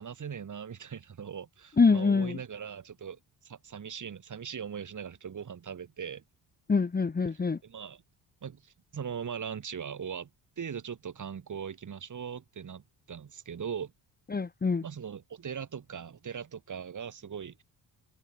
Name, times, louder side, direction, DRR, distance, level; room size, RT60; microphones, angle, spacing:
voice 1, 0.0-3.2 3.4-6.2 7.3-8.0 8.4-10.3 10.6-13.9 14.8-17.6, right 7 dB, 45° right, 4.6 m, -40 dB
voice 2, 1.8-2.4 6.7-7.6 14.3-14.8, left 4 dB, 25° left, 1.4 m, -25 dB
open air
cardioid pair, 105°, 40 cm